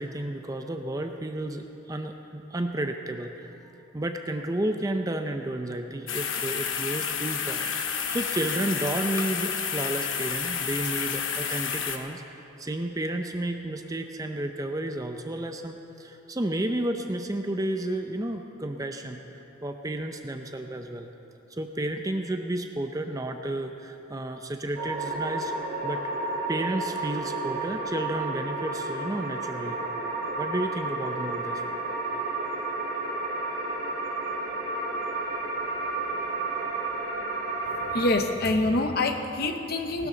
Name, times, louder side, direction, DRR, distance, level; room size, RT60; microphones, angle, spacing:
voice 1, 0.0-3.5 3.9-12.2 12.6-19.2 19.6-21.1 21.5-25.5 25.8-26.0 26.5-29.8 30.4-31.6, right 1 dB, 15° right, 6 dB, 0.5 m, -32 dB
sound 1, 6.1-12.0, left 7 dB, 75° left, 0.9 m, -30 dB
sound 2, 24.7-38.1, right 2 dB, 50° right, 2.5 m, -31 dB
voice 2, 37.9-40.1, left 2 dB, 50° left, 5 dB, 1.0 m, -26 dB
19.0 x 12.5 x 3.9 m, 3.0 s
head